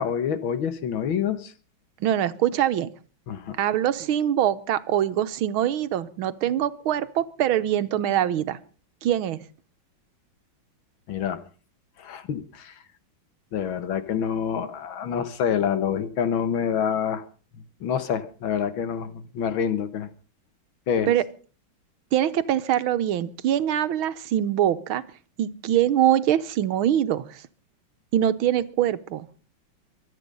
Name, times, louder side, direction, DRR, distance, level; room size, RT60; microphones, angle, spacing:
voice 1, 0.0-1.5 3.3-3.6 11.1-11.4 12.0-12.8 13.5-17.2 17.8-20.1 20.9-21.1, left 8 dB, 75° left, 13 dB, 2.1 m, -27 dB
voice 2, 2.0-2.9 3.6-8.6 9.0-9.4 21.1-21.2 22.1-25.0 25.4-27.4 28.1-29.3, right 11 dB, 90° right, 13 dB, 1.7 m, -23 dB
24.0 x 9.1 x 5.4 m, 0.39 s
omnidirectional pair, 2.2 m